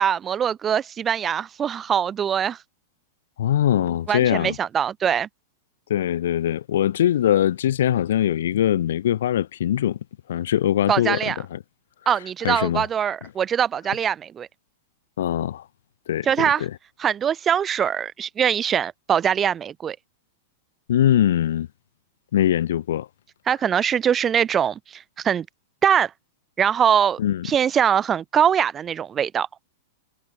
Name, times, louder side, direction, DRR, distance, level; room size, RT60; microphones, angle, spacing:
voice 1, 0.0-2.6 4.1-5.3 10.9-11.4 12.0-14.5 16.2-16.7 17.0-20.0 23.5-25.4 25.8-26.1 26.6-27.2 27.4-29.5, right 8 dB, 20° right, 1.4 m, -22 dB
voice 2, 3.4-4.6 5.9-10.0 10.3-11.6 12.4-12.9 15.2-15.6 16.1-16.3 16.6-16.7 20.9-21.7 22.3-23.1 27.2-27.5, left 11 dB, 80° left, 5.4 m, -22 dB
supercardioid pair, 155°, 0 cm